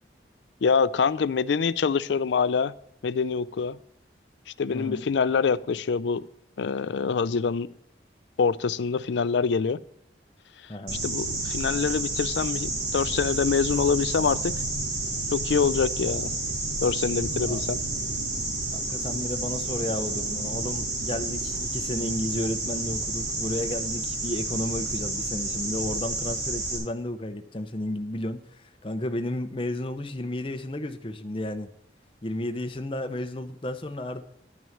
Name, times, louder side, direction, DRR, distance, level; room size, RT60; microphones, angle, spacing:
voice 1, 0.6-2.7 3.0-3.8 4.6-6.2 6.6-7.7 8.4-9.8 11.0-14.5 15.3-16.3 16.8-17.8, left 5 dB, 75° left, 18 dB, 0.4 m, -25 dB
voice 2, 4.7-5.0 10.7-11.0 17.4-17.6 18.7-31.7 32.2-34.2, left 1 dB, 30° left, 8 dB, 0.7 m, -32 dB
sound 1, 10.9-26.8, right 2 dB, 70° right, 4.5 m, -30 dB
11.0 x 6.2 x 7.1 m, 0.76 s
head